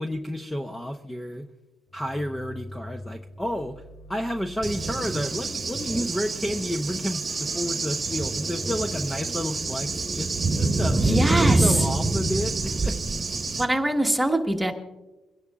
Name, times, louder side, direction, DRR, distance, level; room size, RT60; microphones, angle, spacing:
voice 1, 0.0-1.5 1.9-3.8 4.1-11.0 11.5-13.0, equal, 10° left, 5 dB, 0.7 m, -31 dB
sound 1, 1.9-13.8, left 1 dB, 30° left, 2.0 m, -46 dB
Cricket / Thunder, 4.6-13.6, right 3 dB, 30° right, 1.2 m, -26 dB
voice 2, 10.9-11.9 13.6-14.7, right 1 dB, 5° right, 3 dB, 1.4 m, -23 dB
25.5 x 11.0 x 2.4 m, 1.1 s
cardioid pair, 85°, 0 cm